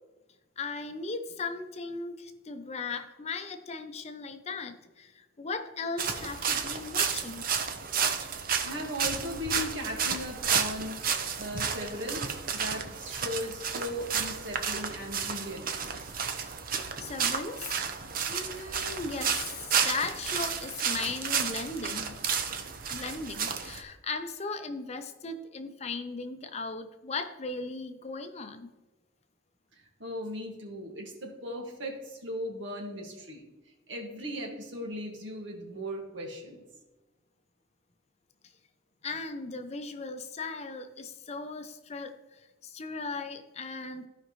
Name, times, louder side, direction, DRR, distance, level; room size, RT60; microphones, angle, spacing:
voice 1, 0.6-7.5 16.4-16.5 17.0-22.2 22.9-28.7 39.0-44.1, left 4 dB, 35° left, 8 dB, 0.6 m, -37 dB
sound 1, 6.0-23.8, right 6 dB, 50° right, 0.7 m, -32 dB
voice 2, 8.6-11.0 11.3-15.7 29.7-33.4 33.9-36.6, equal, 75° right, 1 dB, 1.8 m, -37 dB
14.0 x 5.2 x 3.1 m, 1.1 s
head